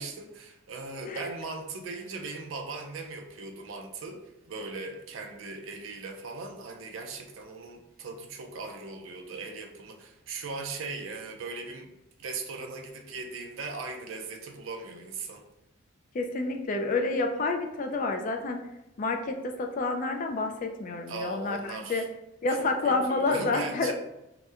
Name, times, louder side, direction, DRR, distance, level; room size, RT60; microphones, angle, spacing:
voice 1, 0.0-11.9 12.2-15.4 21.1-22.1 22.6-23.9, right 3 dB, 70° right, 4 dB, 0.5 m, -39 dB
voice 2, 16.1-18.6 19.0-22.0 22.4-23.9, left 3 dB, 40° left, 4 dB, 0.3 m, -29 dB
2.9 x 2.1 x 3.5 m, 0.89 s
head